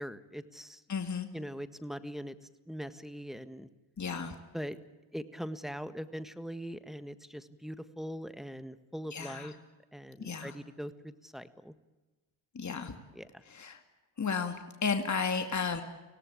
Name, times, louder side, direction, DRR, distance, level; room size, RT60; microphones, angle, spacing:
voice 1, 0.0-0.8 1.3-2.4 2.7-3.7 4.5-4.8 5.1-9.6 9.9-11.7 13.1-13.4, equal, ahead, 11 dB, 1.6 m, -41 dB
voice 2, 0.9-1.3 4.0-4.3 9.1-9.5 10.2-10.5 12.5-12.9 13.5-13.8 14.2-15.8, left 5 dB, 35° left, 6 dB, 2.4 m, -33 dB
25.0 x 18.0 x 8.6 m, 1.2 s
supercardioid pair, 65°, 50 cm